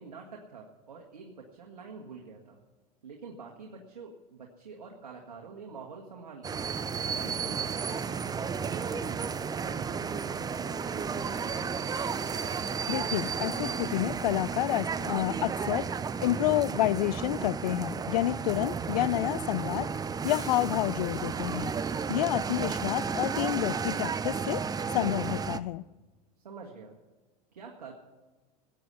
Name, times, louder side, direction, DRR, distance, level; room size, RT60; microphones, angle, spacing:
voice 1, 0.0-2.6 3.0-6.6 7.1-11.7 18.6-18.7 26.4-26.9 27.5-27.9, right 5 dB, 90° right, 0 dB, 1.9 m, -47 dB
sound 1, 6.4-25.6, right 6 dB, 20° right, 0.7 m, -33 dB
voice 2, 12.9-15.9 16.2-19.9 20.2-21.7 22.1-24.6 24.9-25.8, left 15 dB, 75° left, 22 dB, 0.5 m, -29 dB
16.5 x 9.2 x 8.3 m, 1.2 s
hypercardioid pair, 95°, 20 cm